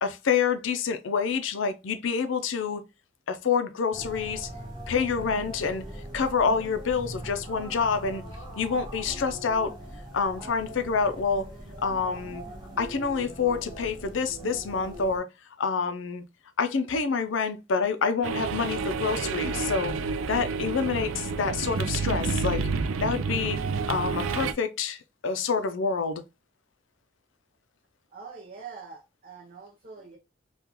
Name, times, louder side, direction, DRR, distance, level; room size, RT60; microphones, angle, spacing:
voice 1, 0.0-2.8 3.3-4.5 4.9-5.8 6.1-8.2 8.6-9.7 10.1-11.5 11.8-12.4 12.8-15.3 15.6-16.2 16.6-19.9 20.3-22.6 23.0-23.6 23.9-26.2, left 5 dB, 70° left, 0.5 m, -27 dB
sound 1, 3.9-15.2, right 1 dB, 20° right, 1.0 m, -41 dB
sound 2, 18.2-24.5, right 4 dB, 85° right, 0.4 m, -29 dB
voice 2, 28.1-30.2, right 5 dB, 45° right, 0.6 m, -44 dB
3.6 x 2.4 x 2.9 m
head